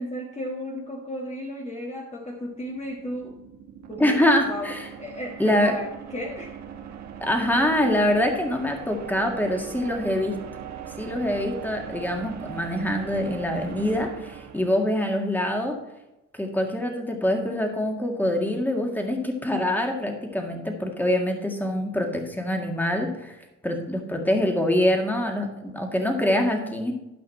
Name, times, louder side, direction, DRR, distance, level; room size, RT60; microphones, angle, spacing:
voice 1, 0.0-3.4 3.9-4.2 4.5-6.6, equal, 20° left, -1 dB, 1.5 m, -34 dB
sound 1, 2.3-15.4, right 8 dB, 65° right, 1.3 m, -40 dB
voice 2, 4.0-4.9 5.4-5.7 7.2-10.4 11.0-15.8 16.3-23.4 23.6-26.9, left 1 dB, 5° left, 2 dB, 1.9 m, -24 dB
12.0 x 5.7 x 4.4 m, 0.94 s
cardioid pair, 90°, 30 cm